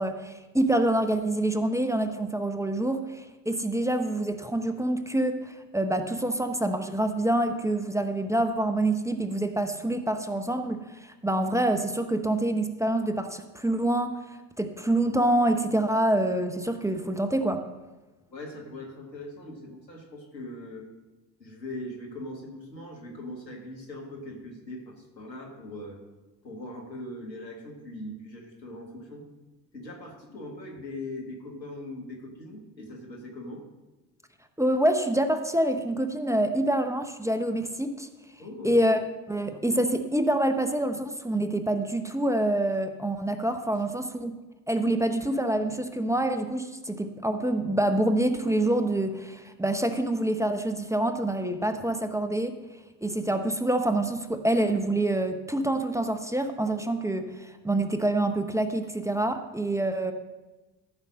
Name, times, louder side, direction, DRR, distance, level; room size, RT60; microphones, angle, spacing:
voice 1, 0.0-14.1 14.6-17.6 34.6-38.1 38.6-39.0 39.3-44.4 44.7-52.5 53.0-60.1, right 1 dB, 5° right, 8 dB, 0.9 m, -26 dB
voice 2, 18.3-20.9 21.4-26.0 26.4-29.3 29.7-33.6 38.4-38.8 43.7-43.8, left 1 dB, 90° left, -1 dB, 1.6 m, -40 dB
14.0 x 5.6 x 6.4 m, 1.1 s
figure-of-eight pair, 50°, 49 cm